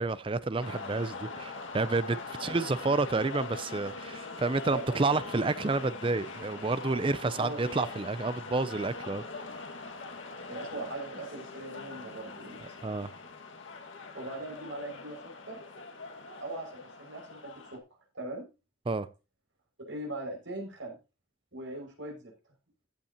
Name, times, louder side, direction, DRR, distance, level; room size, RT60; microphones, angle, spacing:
voice 1, 0.0-9.2 12.8-13.1 18.9-19.1, right 3 dB, 25° right, 0.4 m, -30 dB
sound 1, 0.6-17.8, left 3 dB, 75° left, 1.9 m, -43 dB
voice 2, 2.4-2.7 4.7-5.0 7.2-7.9 10.5-12.6 14.1-15.6 16.4-17.8 18.1-18.5 19.9-21.0 21.5-22.3, right 2 dB, 75° right, 6.0 m, -40 dB
15.5 x 8.3 x 2.9 m
head